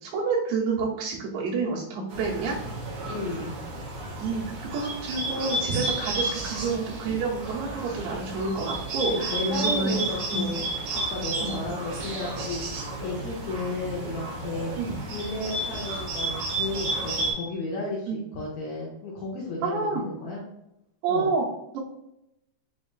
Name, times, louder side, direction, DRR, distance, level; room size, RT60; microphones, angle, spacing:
voice 1, 0.0-2.6 3.4-3.5 4.2-10.0 10.3-10.4 11.4-11.6 14.8-14.9 18.1-18.2 19.6-20.0 21.0-21.4 21.7-21.8, right 4 dB, 85° right, -5 dB, 2.7 m, -29 dB
Bird, 2.1-17.3, right 2 dB, 65° right, 2.1 m, -32 dB
voice 2, 3.1-3.6 9.1-14.7 15.0-18.1 18.3-20.4 21.1-21.3, left 2 dB, 75° left, -4 dB, 1.7 m, -33 dB
6.2 x 2.4 x 2.2 m, 0.84 s
omnidirectional pair, 4.0 m